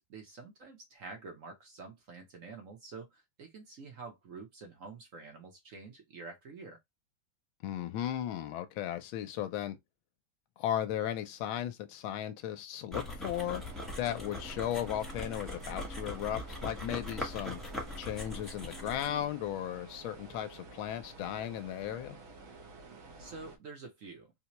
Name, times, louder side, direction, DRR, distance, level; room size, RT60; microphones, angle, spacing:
voice 1, 0.0-6.8 23.2-24.3, right 4 dB, 55° right, 1.0 m, -48 dB
voice 2, 7.6-9.8 10.6-13.6 14.0-17.6 18.0-22.2, left 11 dB, 85° left, 1.5 m, -36 dB
sound 1, 12.9-19.2, left 1 dB, ahead, 0.5 m, -41 dB
sound 2, 13.2-23.6, right 3 dB, 80° right, 1.7 m, -51 dB
4.2 x 2.2 x 2.9 m
omnidirectional pair, 2.1 m